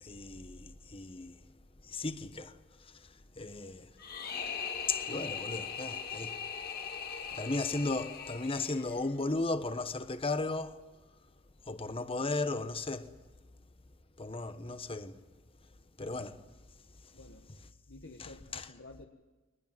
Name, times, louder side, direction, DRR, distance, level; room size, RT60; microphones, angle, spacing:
voice 1, 0.0-1.5 1.8-3.9 4.9-6.4 7.0-10.8 11.7-13.2 14.2-15.2 16.0-16.4 17.0-17.1 18.2-18.7, left 3 dB, 30° left, 1.1 m, -36 dB
sound 1, 4.0-9.1, left 6 dB, 50° left, 2.2 m, -40 dB
voice 2, 17.1-17.5 17.9-19.1, left 2 dB, 70° left, 1.5 m, -52 dB
22.0 x 20.0 x 9.0 m
head